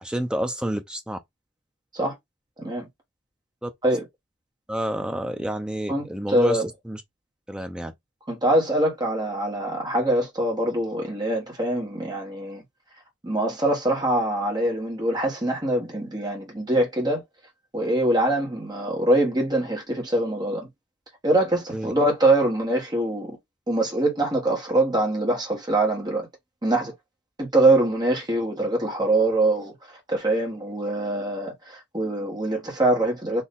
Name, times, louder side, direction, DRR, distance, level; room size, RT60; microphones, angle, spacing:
voice 1, 0.0-1.2 3.6-3.7 4.7-7.0 7.5-7.9 21.7-21.9, right 1 dB, 5° right, 0.6 m, -29 dB
voice 2, 2.6-2.9 3.8-4.1 5.9-6.0 6.3-6.6 8.3-12.6 13.2-17.2 17.7-20.7 21.2-23.4 23.7-26.3 26.6-26.9 27.4-33.4, right 1 dB, 20° right, 1.6 m, -23 dB
4.2 x 2.9 x 3.6 m
head